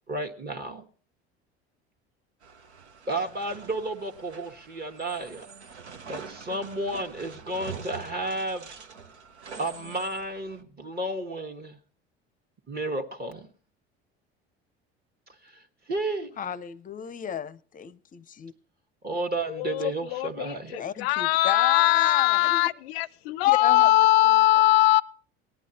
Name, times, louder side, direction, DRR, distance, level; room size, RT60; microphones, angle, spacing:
voice 1, 0.1-0.9 3.1-5.5 6.1-8.7 9.6-11.8 12.7-13.5 15.4-15.6 15.9-16.4 19.0-20.9, right 2 dB, 30° right, 1.2 m, -32 dB
sound 1, 2.4-10.6, right 5 dB, 90° right, 0.8 m, -45 dB
voice 2, 16.4-18.5 20.8-22.7 23.6-24.1, left 7 dB, 25° left, 0.6 m, -32 dB
voice 3, 19.5-25.0, left 16 dB, 70° left, 0.5 m, -21 dB
18.5 x 10.5 x 2.8 m
hypercardioid pair, 70°, 33 cm